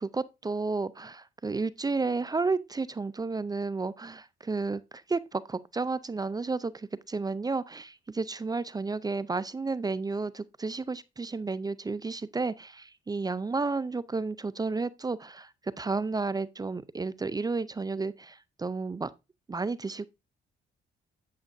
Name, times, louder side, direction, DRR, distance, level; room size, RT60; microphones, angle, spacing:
voice 1, 0.0-19.1 19.5-20.1, right 3 dB, 20° right, 0.4 m, -32 dB
8.9 x 7.2 x 2.6 m
cardioid pair, 90°, 20 cm